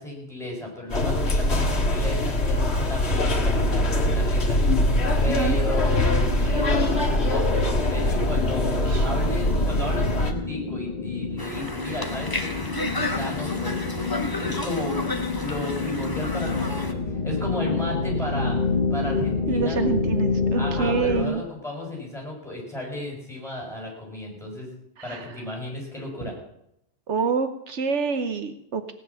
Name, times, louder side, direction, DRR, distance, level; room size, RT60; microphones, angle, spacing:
voice 1, 0.0-4.8 5.2-14.0 14.4-15.0 15.4-18.6 18.9-19.8 20.5-24.7 25.0-26.4, left 1 dB, ahead, -1 dB, 6.2 m, -34 dB
sound 1, 0.9-10.3, left 1 dB, 65° left, 2.1 m, -22 dB
sound 2, 3.4-21.2, left 4 dB, 40° left, 1.2 m, -29 dB
voice 2, 5.2-5.6 8.9-9.1 19.5-21.4 25.0-25.3 26.2-26.3 27.1-28.9, right 5 dB, 75° right, 9 dB, 1.3 m, -27 dB
Conversation, 11.4-16.9, left 1 dB, 20° left, 1.4 m, -32 dB
17.5 x 9.8 x 7.0 m, 0.77 s
omnidirectional pair, 1.2 m